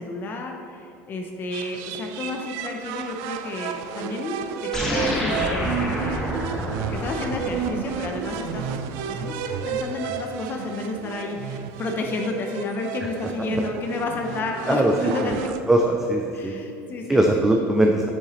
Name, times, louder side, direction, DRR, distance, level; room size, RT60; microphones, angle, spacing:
voice 1, 0.0-4.4 4.7-15.5 16.3-17.2, left 3 dB, 35° left, 3 dB, 0.6 m, -31 dB
sound 1, 1.5-15.6, right 7 dB, 70° right, 0.4 m, -32 dB
sound 2, 4.7-9.4, equal, 10° left, 1.6 m, -29 dB
voice 2, 15.7-16.6 17.1-18.1, right 1 dB, 5° right, 1 dB, 0.4 m, -20 dB
7.8 x 7.0 x 3.0 m, 2.5 s
cardioid pair, 140°, 6 cm